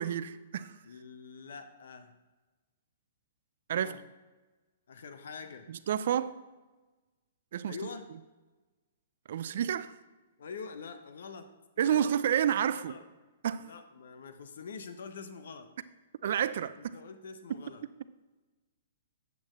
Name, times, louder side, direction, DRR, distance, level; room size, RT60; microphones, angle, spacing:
voice 1, 0.0-0.8 3.7-3.9 5.7-6.4 7.5-7.8 9.3-9.9 11.8-12.9 13.4-13.7 16.2-16.9, right 9 dB, 65° right, 14 dB, 0.5 m, -30 dB
voice 2, 0.8-2.1 3.7-4.0 4.9-5.7 7.7-8.0 10.4-11.5 11.8-12.1 12.7-13.0 13.6-15.7 16.8-17.8, left 5 dB, 70° left, 8 dB, 0.8 m, -45 dB
8.6 x 8.0 x 3.2 m, 1.2 s
hypercardioid pair, 130°, 0 cm